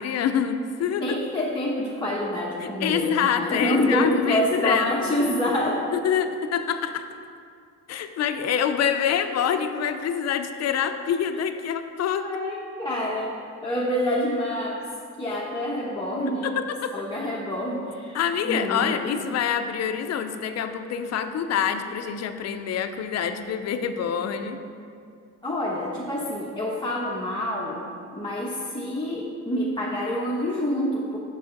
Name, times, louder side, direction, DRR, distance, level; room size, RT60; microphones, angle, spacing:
voice 1, 0.0-1.2 2.6-4.9 5.9-7.1 7.9-12.3 16.4-16.9 18.1-24.6, left 8 dB, 60° left, 8 dB, 0.6 m, -26 dB
voice 2, 1.0-5.9 12.2-13.3 13.6-14.8 15.2-16.6 16.9-18.2 18.4-19.1 25.4-27.8 28.1-31.2, left 1 dB, 15° left, -5 dB, 0.9 m, -27 dB
6.1 x 4.9 x 5.8 m, 2.3 s
cardioid pair, 90°, 30 cm